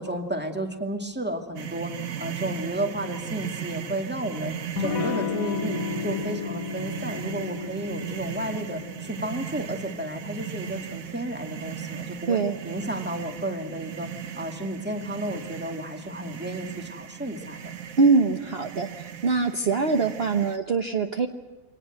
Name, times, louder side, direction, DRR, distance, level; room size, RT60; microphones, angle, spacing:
voice 1, 0.0-1.9 2.2-14.1 14.4-17.7, right 1 dB, 5° right, 4 dB, 2.3 m, -32 dB
sound 1, 1.6-20.6, right 9 dB, 70° right, 1.6 m, -37 dB
Electric guitar / Strum, 4.8-10.1, left 7 dB, 70° left, 1.5 m, -33 dB
voice 2, 18.0-18.9 19.2-21.3, right 4 dB, 45° right, 6 dB, 1.3 m, -23 dB
25.0 x 19.0 x 7.8 m, 1.2 s
omnidirectional pair, 1.5 m